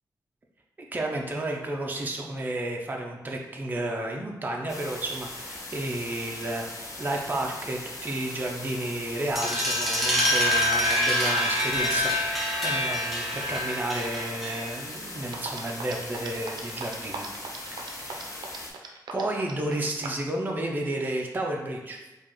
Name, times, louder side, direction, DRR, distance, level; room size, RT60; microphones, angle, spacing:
voice 1, 0.9-17.3 17.7-18.6 19.1-22.0, right 1 dB, 25° right, 0 dB, 0.5 m, -32 dB
sound 1, 4.7-18.7, left 2 dB, 45° left, 0.8 m, -40 dB
sound 2, 9.4-14.9, left 1 dB, ahead, 0.8 m, -26 dB
sound 3, 15.3-20.3, right 5 dB, 90° right, 0.5 m, -38 dB
4.7 x 2.3 x 2.9 m, 1.0 s
wide cardioid pair, 110°, 7 cm